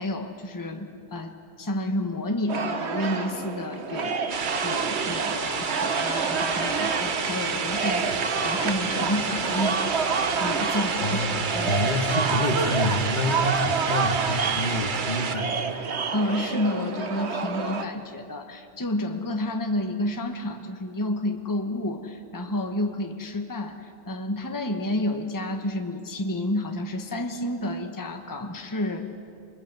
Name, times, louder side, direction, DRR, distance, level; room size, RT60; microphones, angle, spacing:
voice 1, 0.0-4.2 4.6-10.0 10.4-11.2 11.5-12.0 16.1-29.1, left 1 dB, 20° left, 4 dB, 1.2 m, -30 dB
sound 1, 2.5-17.9, right 5 dB, 85° right, 1.5 m, -29 dB
sound 2, 4.3-15.4, right 6 dB, 50° right, 1.0 m, -30 dB
sound 3, 6.7-11.7, equal, 10° right, 5.2 m, -37 dB
voice 2, 11.0-15.8, left 1 dB, 45° left, 5 dB, 1.6 m, -28 dB
27.5 x 21.5 x 8.1 m, 2.5 s
omnidirectional pair, 1.1 m